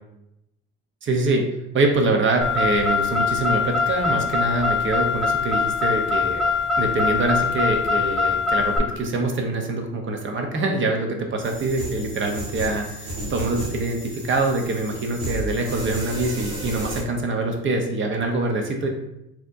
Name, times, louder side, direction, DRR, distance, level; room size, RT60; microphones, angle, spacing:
voice 1, 1.0-1.5 1.7-6.5 6.8-18.9, right 2 dB, 40° right, 3 dB, 0.8 m, -24 dB
Car, 2.4-8.8, left 4 dB, ahead, 0.8 m, -23 dB
sound 1, 11.4-17.0, right 1 dB, 80° right, 1.4 m, -33 dB
4.2 x 2.9 x 2.6 m, 0.86 s
supercardioid pair, 75°, 30 cm